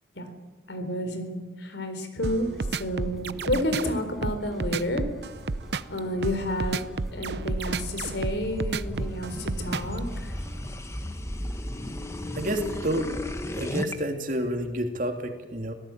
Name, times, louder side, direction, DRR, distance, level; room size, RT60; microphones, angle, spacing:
voice 1, 0.7-5.0 5.9-10.3, left 1 dB, 80° left, 8 dB, 4.1 m, -30 dB
sound 1, 2.2-10.7, equal, ahead, 6.1 m, -44 dB
sound 2, 2.2-10.0, right 3 dB, 65° right, 0.7 m, -31 dB
sound 3, 5.9-13.9, left 1 dB, 15° left, 1.4 m, -36 dB
voice 2, 12.4-13.1 13.5-15.7, right 1 dB, 45° right, 4 dB, 2.8 m, -29 dB
25.0 x 17.5 x 8.8 m, 1.3 s
head